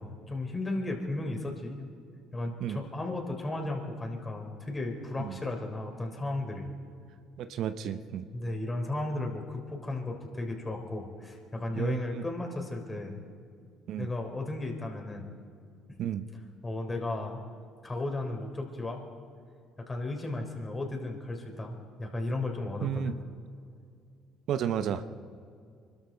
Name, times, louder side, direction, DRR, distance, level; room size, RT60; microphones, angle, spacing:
voice 1, 0.0-1.9 2.3-6.7 8.3-13.2 14.0-15.3 16.6-17.4 17.8-19.0 19.8-23.2, left 2 dB, 25° left, 2 dB, 3.7 m, -35 dB
voice 2, 7.4-8.2 11.8-12.0 13.9-14.1 16.0-16.3 22.8-23.2 24.5-25.0, right 9 dB, 65° right, 10 dB, 0.8 m, -32 dB
25.0 x 13.0 x 4.5 m, 2.3 s
hypercardioid pair, 60°, 0 cm